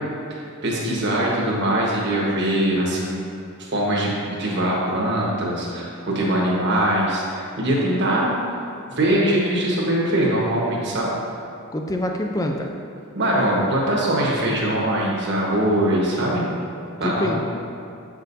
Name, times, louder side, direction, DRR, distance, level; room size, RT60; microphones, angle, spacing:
voice 1, 0.3-3.3 3.6-8.3 8.9-11.1 13.1-16.4 17.0-17.4, right 1 dB, 50° right, -4 dB, 1.4 m, -22 dB
voice 2, 11.7-12.7 17.0-17.4, left 1 dB, 15° left, 3 dB, 0.4 m, -25 dB
8.0 x 6.3 x 2.7 m, 2.5 s
head